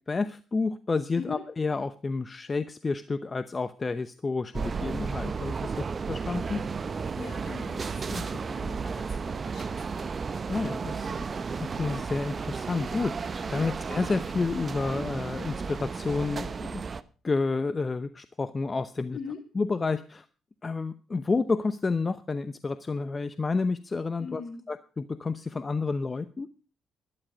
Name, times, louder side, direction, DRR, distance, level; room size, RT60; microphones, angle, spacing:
voice 1, 0.1-6.6 8.1-8.2 10.5-11.1 11.6-16.8 17.2-19.2 19.5-20.2 20.6-24.4 24.7-26.5, left 4 dB, 35° left, 13 dB, 0.8 m, -30 dB
sound 1, 4.5-17.0, right 5 dB, 45° right, 0.8 m, -33 dB
voice 2, 7.0-10.1 13.5-13.8 19.1-19.4 24.2-24.6, left 5 dB, 60° left, 3 dB, 3.9 m, -41 dB
12.0 x 11.5 x 5.1 m, 0.36 s
hypercardioid pair, 45°, 0 cm